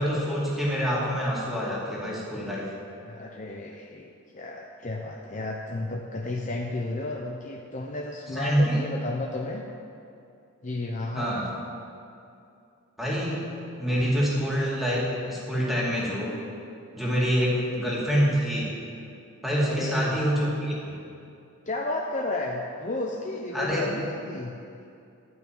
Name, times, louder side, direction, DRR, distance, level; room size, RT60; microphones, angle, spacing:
voice 1, 0.0-2.7 8.3-8.8 11.1-11.5 13.0-13.5 13.8-16.4 16.9-18.8 19.4-21.0 23.5-23.9, equal, ahead, -6 dB, 2.4 m, -26 dB
voice 2, 3.1-9.6 10.6-11.4 19.5-20.2 21.7-24.5, left 2 dB, 35° left, 0 dB, 0.7 m, -33 dB
12.5 x 6.1 x 9.0 m, 2.6 s
head